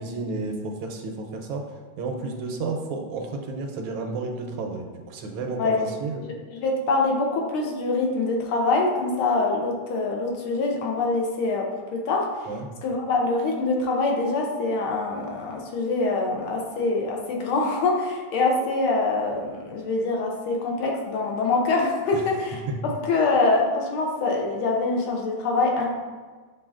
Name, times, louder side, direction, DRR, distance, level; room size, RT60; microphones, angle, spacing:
voice 1, 0.0-1.6 2.0-6.2 12.5-12.7 22.1-22.2 22.7-22.8, right 3 dB, 85° right, 3 dB, 1.5 m, -31 dB
voice 2, 6.2-12.5 12.8-25.9, left 3 dB, 85° left, 0 dB, 1.6 m, -24 dB
7.2 x 2.6 x 2.4 m, 1.4 s
omnidirectional pair, 2.3 m